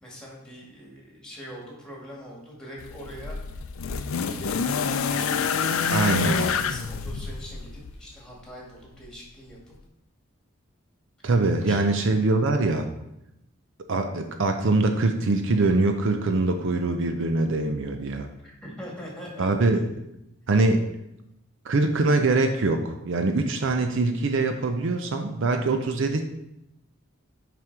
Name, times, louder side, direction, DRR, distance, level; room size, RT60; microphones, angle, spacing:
voice 1, 0.0-3.4 4.1-9.7 11.6-12.2 18.4-19.5 19.9-20.0, equal, 5° left, -4 dB, 2.0 m, -42 dB
sound 1, 2.8-8.0 9.1-9.2, left 6 dB, 85° left, 0.5 m, -27 dB
voice 2, 5.9-6.4 11.2-12.9 13.9-18.3 19.4-19.9 20.5-20.8 21.6-26.2, right 3 dB, 65° right, 6 dB, 0.6 m, -23 dB
6.2 x 5.2 x 4.6 m, 0.85 s
head